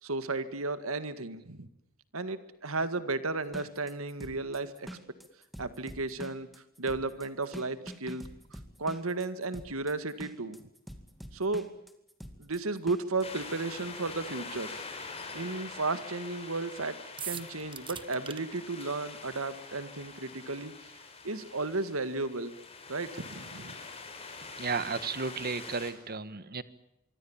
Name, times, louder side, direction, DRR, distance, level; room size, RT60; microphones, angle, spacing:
voice 1, 0.0-1.7 2.1-4.9 5.6-6.5 6.8-10.7 11.3-11.7 12.4-14.9 15.3-17.0 17.2-20.7 21.2-22.5 22.9-23.8, right 3 dB, 75° right, 12 dB, 1.9 m, -34 dB
sound 1, 3.4-13.2, equal, ahead, 2.4 m, -46 dB
sound 2, 13.2-25.9, left 4 dB, 30° left, 5.3 m, -45 dB
sound 3, 17.2-18.4, right 8 dB, 25° right, 1.4 m, -39 dB
voice 2, 24.6-26.6, right 4 dB, 45° right, 15 dB, 1.6 m, -33 dB
25.5 x 24.0 x 7.3 m, 0.83 s
head